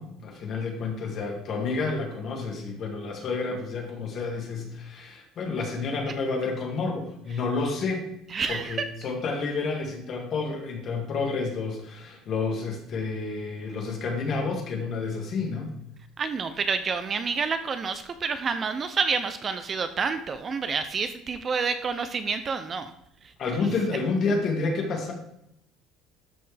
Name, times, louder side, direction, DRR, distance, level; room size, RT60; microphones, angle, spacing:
voice 1, 0.0-8.1 8.5-15.7 23.4-25.1, left 4 dB, 35° left, 2 dB, 1.7 m, -30 dB
voice 2, 8.3-8.8 16.2-22.9, right 5 dB, 25° right, 9 dB, 0.4 m, -28 dB
12.0 x 4.4 x 3.3 m, 0.79 s
cardioid pair, 165°, 0 cm